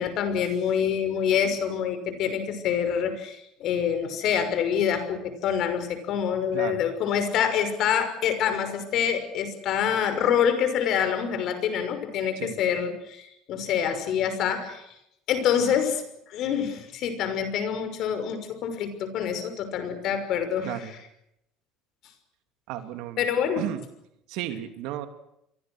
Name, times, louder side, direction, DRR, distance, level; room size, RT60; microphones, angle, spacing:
voice 1, 0.0-14.8 15.3-16.0 16.3-21.0 23.2-23.7, left 8 dB, 55° left, 9 dB, 6.0 m, -26 dB
voice 2, 6.5-6.8 12.4-12.5 20.6-20.9 22.7-23.2 23.6-23.8 24.3-25.1, right 12 dB, 70° right, 8 dB, 3.1 m, -33 dB
29.5 x 23.5 x 6.5 m, 0.80 s
cardioid pair, 130°, 0 cm